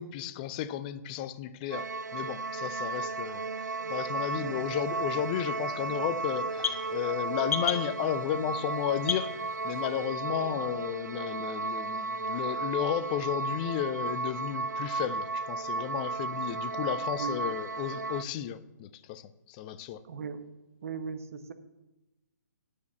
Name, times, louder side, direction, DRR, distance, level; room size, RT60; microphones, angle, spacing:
voice 1, 0.0-1.9 2.1-9.3 9.6-20.0, left 10 dB, 25° left, 0.5 m, -33 dB
sound 1, 1.7-18.2, right 3 dB, 85° right, 0.4 m, -34 dB
voice 2, 4.3-4.7 10.3-10.6 17.2-17.4 20.1-20.4 20.8-21.5, right 5 dB, 50° right, 1.2 m, -38 dB
sound 2, 4.6-10.1, left 7 dB, 55° left, 1.2 m, -38 dB
9.5 x 6.5 x 8.2 m
figure-of-eight pair, 135°, 9 cm